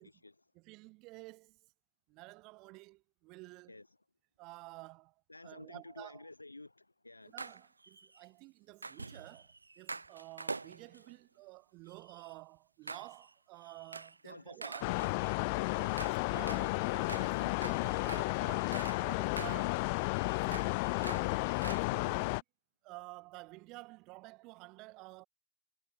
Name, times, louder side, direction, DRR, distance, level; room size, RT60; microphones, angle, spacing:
voice 1, 0.0-0.5 3.7-3.9 5.3-7.4 14.2-15.1, left 2 dB, 85° left, 2.1 m, -52 dB
voice 2, 0.5-1.6 2.1-3.7 4.4-5.1 5.4-6.3 7.3-15.0 15.4-19.8 20.4-22.4 22.8-25.3, right 24 dB, 40° right, 2.4 m, -51 dB
sound 1, 7.4-8.2 8.8-11.1 11.9-12.3 12.9-13.3 13.6-14.2 14.6-19.1 19.4-21.8, right 3 dB, 80° right, 2.6 m, -46 dB
sound 2, 14.8-22.4, left 29 dB, 45° left, 0.8 m, -33 dB
figure-of-eight pair, 90°, 0 cm